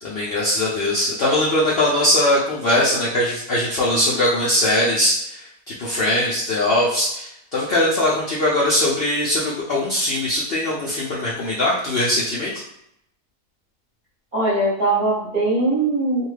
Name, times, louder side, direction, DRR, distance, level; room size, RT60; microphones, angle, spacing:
voice 1, 0.0-5.4 5.7-12.5, left 1 dB, 90° left, -6 dB, 0.5 m, -21 dB
voice 2, 14.3-16.3, right 2 dB, 40° right, -8 dB, 0.7 m, -20 dB
2.6 x 2.3 x 3.2 m, 0.77 s
omnidirectional pair, 1.7 m